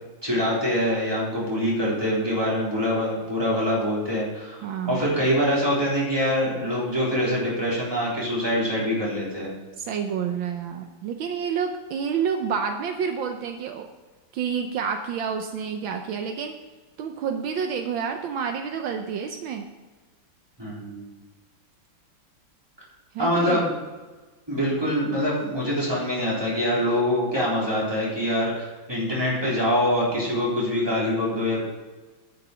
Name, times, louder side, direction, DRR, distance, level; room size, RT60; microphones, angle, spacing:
voice 1, 0.2-9.5 20.6-21.0 23.2-23.7 24.5-31.6, equal, 10° right, -6 dB, 3.7 m, -24 dB
voice 2, 4.6-5.1 9.8-13.9 14.3-16.5 17.0-19.6 23.1-23.6, right 7 dB, 75° right, 5 dB, 1.5 m, -29 dB
10.5 x 6.7 x 6.1 m, 1.3 s
omnidirectional pair, 2.2 m